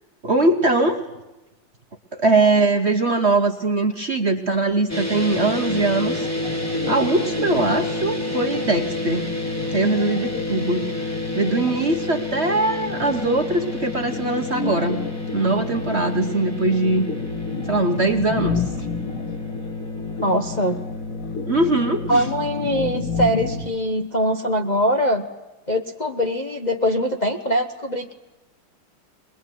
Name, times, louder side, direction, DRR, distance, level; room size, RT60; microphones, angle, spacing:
voice 1, 0.2-1.0 2.1-6.3 6.9-9.3 9.7-15.0 15.3-17.1 17.7-18.6 21.5-22.2, right 2 dB, 35° right, 6 dB, 1.2 m, -21 dB
sound 1, 4.9-23.6, left 2 dB, 10° left, 1.8 m, -29 dB
sound 2, 5.3-23.7, left 5 dB, 80° left, 3.1 m, -33 dB
voice 2, 20.2-20.8 22.1-25.3 25.7-28.1, equal, 25° left, 3 dB, 1.0 m, -22 dB
22.0 x 22.0 x 9.3 m, 1.0 s
omnidirectional pair, 2.3 m